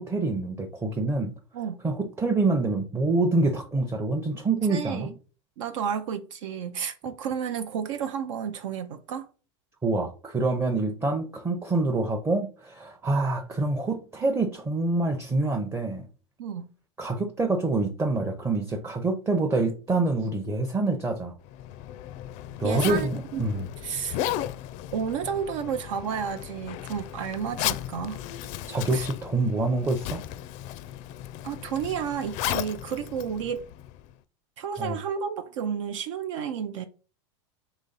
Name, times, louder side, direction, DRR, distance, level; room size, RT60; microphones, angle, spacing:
voice 1, 0.0-1.3 1.8-5.1 9.8-16.1 17.0-21.3 22.6-23.7 28.7-30.2 34.8-35.0, right 2 dB, 15° right, 0.6 m, -26 dB
voice 2, 4.7-5.1 5.6-9.3 16.4-16.7 22.6-23.4 23.8-24.2 24.9-28.2 28.9-29.1 31.4-33.6 34.6-36.8, right 7 dB, 75° right, 0.6 m, -31 dB
Zipper (clothing), 21.4-34.1, left 13 dB, 50° left, 0.4 m, -35 dB
4.0 x 3.1 x 3.9 m
supercardioid pair, 120°, 16 cm